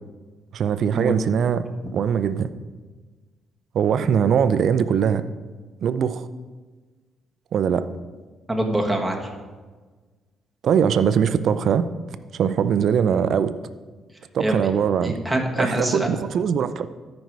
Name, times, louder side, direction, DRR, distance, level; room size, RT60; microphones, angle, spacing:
voice 1, 0.5-2.5 3.7-5.2 5.8-6.3 7.5-7.9 10.6-11.9 12.3-13.5 14.3-15.2 15.6-16.9, right 7 dB, 65° right, 13 dB, 0.5 m, -21 dB
voice 2, 8.5-9.3 14.4-14.6 15.0-16.1, right 1 dB, 5° right, 0 dB, 1.6 m, -24 dB
13.5 x 5.3 x 4.7 m, 1.4 s
cardioid pair, 90°, 0 cm